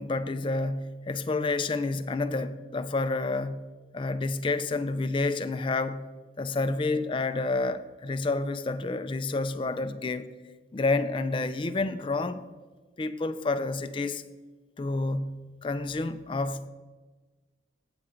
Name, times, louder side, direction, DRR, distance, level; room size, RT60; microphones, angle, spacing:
voice 1, 0.0-3.7 3.9-6.1 6.4-10.3 10.7-12.4 13.0-14.2 14.8-16.7, left 3 dB, 25° left, 0.3 m, -29 dB
7.8 x 7.1 x 5.0 m
head